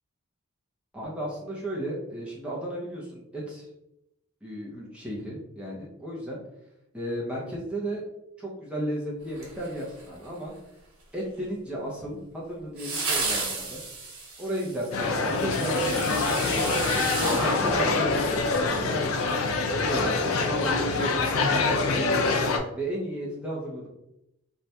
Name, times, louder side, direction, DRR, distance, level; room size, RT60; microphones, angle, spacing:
voice 1, 0.9-3.7 4.4-6.4 6.9-8.0 8.4-10.5 11.1-13.8 14.4-19.2 19.7-22.3 22.7-23.9, right 1 dB, 5° right, -5 dB, 0.7 m, -34 dB
sound 1, 9.3-10.3 12.8-18.6 18.9-19.0, right 3 dB, 70° right, 1.0 m, -34 dB
sound 2, 14.9-22.6, left 3 dB, 75° left, 0.4 m, -25 dB
2.7 x 2.4 x 3.3 m, 0.85 s
head